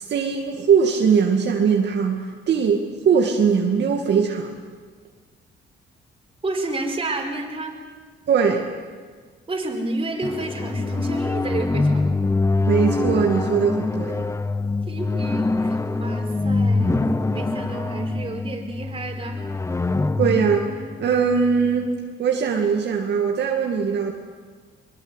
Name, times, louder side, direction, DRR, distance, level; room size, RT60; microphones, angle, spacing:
voice 1, 0.0-4.5 8.3-8.7 12.7-14.2 20.2-21.9 22.2-24.1, right 6 dB, 65° right, 1 dB, 2.3 m, -21 dB
voice 2, 6.4-7.8 9.5-12.2 14.9-19.4, right 2 dB, 30° right, 2 dB, 5.0 m, -30 dB
sound 1, 10.2-21.9, left 3 dB, 15° left, 0.8 m, -24 dB
23.0 x 22.0 x 8.3 m, 1.6 s
cardioid pair, 100°, 19 cm